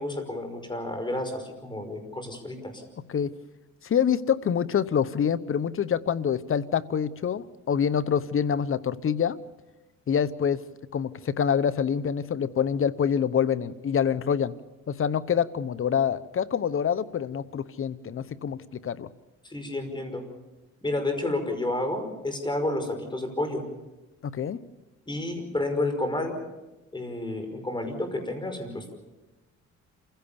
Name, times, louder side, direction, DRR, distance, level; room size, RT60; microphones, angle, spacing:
voice 1, 0.0-2.7 19.4-20.2 20.8-23.6 25.1-26.4 26.9-28.9, left 2 dB, 15° left, 6 dB, 5.5 m, -30 dB
voice 2, 3.8-9.4 10.1-10.6 10.9-14.5 14.9-19.1 24.2-24.6, left 8 dB, 45° left, 16 dB, 1.0 m, -26 dB
27.5 x 16.0 x 7.1 m, 1.1 s
cardioid pair, 90°, 30 cm